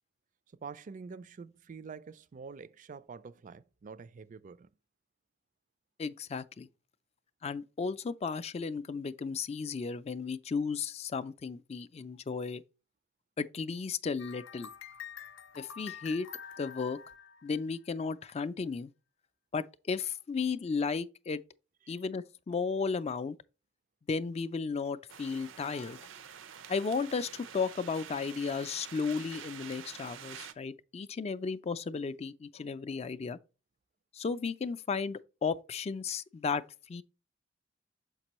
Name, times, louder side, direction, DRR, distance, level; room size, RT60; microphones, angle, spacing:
voice 1, 0.6-4.7, right 5 dB, 40° right, 0.4 m, -46 dB
voice 2, 6.0-6.7 7.4-12.6 13.4-14.7 15.6-16.3 16.6-17.0 17.4-18.9 19.5-21.4 21.9-23.4 24.1-26.0 26.7-33.4 34.1-37.0, left 5 dB, 35° left, 0.3 m, -34 dB
sound 1, 14.2-18.0, left 8 dB, 80° left, 0.6 m, -47 dB
sound 2, 25.1-30.5, right 8 dB, 90° right, 0.6 m, -48 dB
6.6 x 5.3 x 2.9 m
head